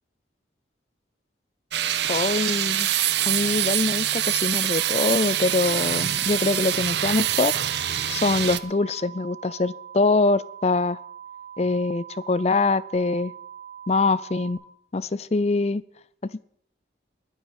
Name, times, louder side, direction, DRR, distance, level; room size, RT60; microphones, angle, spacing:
sound 1, 1.7-8.6, right 11 dB, 65° right, 0.8 m, -25 dB
voice 1, 2.1-2.9 3.3-7.5 8.1-11.0 11.6-13.3 13.9-14.6 14.9-15.8, left 3 dB, 35° left, 18 dB, 0.5 m, -24 dB
sound 2, 4.7-14.5, right 9 dB, 55° left, 3.0 m, -42 dB
21.0 x 9.6 x 4.9 m, 0.68 s
head